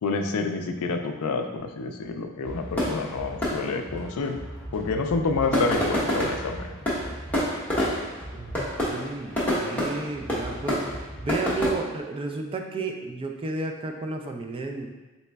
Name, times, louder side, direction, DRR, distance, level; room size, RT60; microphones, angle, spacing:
voice 1, 0.0-4.4 4.7-6.7, left 3 dB, 75° left, 5 dB, 0.4 m, -28 dB
sound 1, 2.4-11.7, equal, 5° left, 0.9 m, -29 dB
voice 2, 8.3-10.8 11.2-14.9, right 3 dB, 25° right, 3 dB, 0.3 m, -32 dB
4.0 x 3.9 x 2.2 m, 1.1 s
head